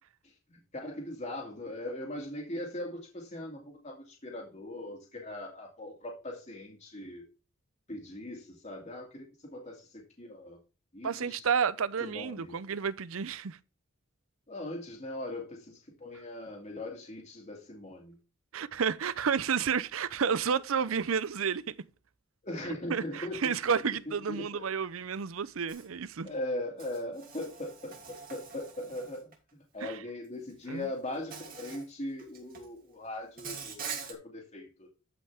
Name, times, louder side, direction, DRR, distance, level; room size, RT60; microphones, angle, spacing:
voice 1, 0.5-7.2 7.9-10.6 10.9-11.5 12.0-12.6 14.5-18.2 22.4-23.5 24.1-24.6 26.2-29.3 29.7-33.8 34.1-34.9, left 1 dB, 35° left, 2.4 m, -40 dB
voice 2, 11.0-13.6 18.5-21.7 22.9-26.3 29.8-30.0 30.7-30.9, right 6 dB, 85° right, 0.6 m, -31 dB
Insect, 25.7-25.9 26.8-29.3 30.5-30.6 31.3-31.9 32.2-32.7 33.4-34.1, right 6 dB, 45° right, 2.6 m, -43 dB
13.0 x 5.5 x 3.5 m
head